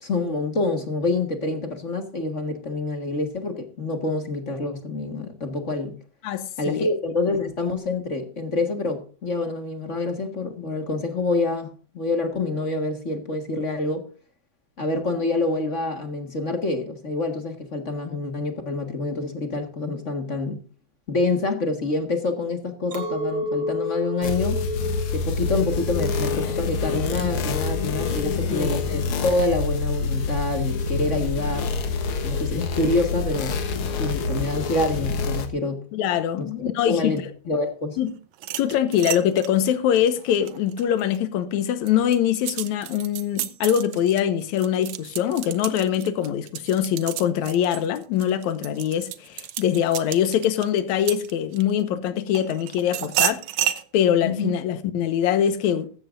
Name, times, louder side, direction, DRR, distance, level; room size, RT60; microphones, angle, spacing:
voice 1, 0.0-6.0 6.6-11.7 11.9-14.0 14.8-20.6 21.1-24.6 25.1-31.7 32.2-33.6 34.0-35.8 36.6-38.0 54.2-54.5, left 2 dB, 35° left, 1.4 m, -27 dB
voice 2, 6.2-6.9 28.2-28.7 35.9-37.2 38.0-38.1 38.6-53.4 53.9-55.9, left 10 dB, 80° left, 2.5 m, -23 dB
Chink clink, 22.9-28.3, left 1 dB, 45° right, 3.3 m, -32 dB
sound 1, 24.2-35.5, left 4 dB, 55° left, 1.9 m, -26 dB
sound 2, 38.3-41.2 41.7-51.8 52.3-53.8, right 12 dB, 70° right, 1.9 m, -31 dB
15.5 x 13.5 x 2.5 m
omnidirectional pair, 3.4 m